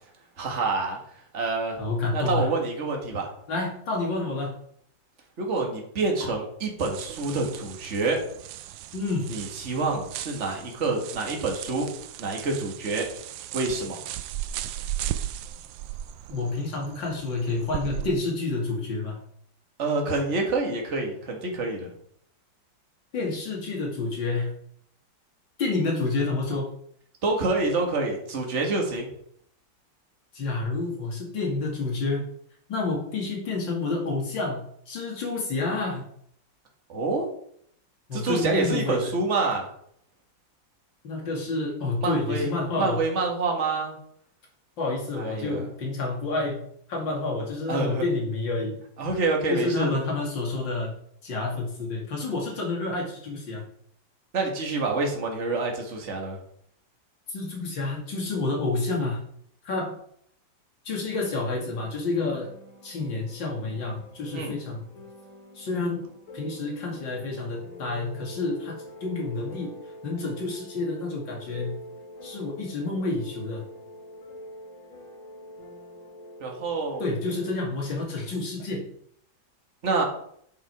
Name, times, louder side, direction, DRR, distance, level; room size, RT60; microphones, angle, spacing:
voice 1, 0.4-1.0 1.3-1.8 2.1-3.3 5.4-8.2 9.3-11.9 12.2-13.1 13.5-14.0 19.8-21.9 27.2-29.1 36.9-37.3 38.1-39.7 42.0-44.0 45.2-45.6 47.7-48.0 49.0-50.0 54.3-56.4 64.3-64.5 76.4-77.0 79.8-80.0, right 3 dB, 40° right, 1 dB, 1.9 m, -27 dB
voice 2, 1.8-2.5 3.5-4.5 6.2-6.3 8.9-9.3 16.3-19.2 23.1-24.5 25.6-26.7 30.3-32.2 32.7-36.1 38.1-39.1 41.0-43.0 44.8-46.6 46.9-48.8 49.5-50.9 51.2-53.6 57.3-59.2 59.6-59.9 60.8-62.5 62.8-64.8 65.5-66.0 66.3-69.7 70.0-71.7 72.2-73.6 77.0-78.9, left 3 dB, 70° left, -1 dB, 3.2 m, -29 dB
sound 1, 6.8-18.1, right 12 dB, 80° right, 1.3 m, -37 dB
sound 2, 61.1-77.5, left 1 dB, 45° left, 2.8 m, -45 dB
10.5 x 5.6 x 4.7 m, 0.67 s
omnidirectional pair, 2.1 m